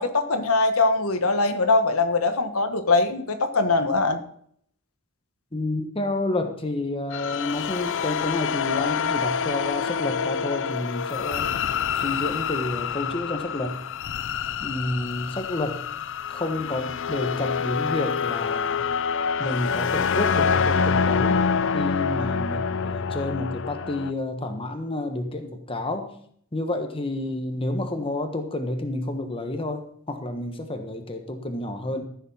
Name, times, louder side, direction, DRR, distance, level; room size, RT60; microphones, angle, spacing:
voice 1, 0.0-4.2, left 3 dB, 80° left, 7 dB, 1.4 m, -22 dB
voice 2, 5.5-11.5 11.9-13.8 14.6-15.8 16.3-18.9 19.4-21.4 21.7-26.1 26.5-32.0, left 2 dB, 25° left, 6 dB, 1.4 m, -29 dB
sound 1, 7.1-24.1, left 6 dB, 60° left, 0.6 m, -26 dB
14.0 x 7.3 x 5.6 m, 0.62 s
head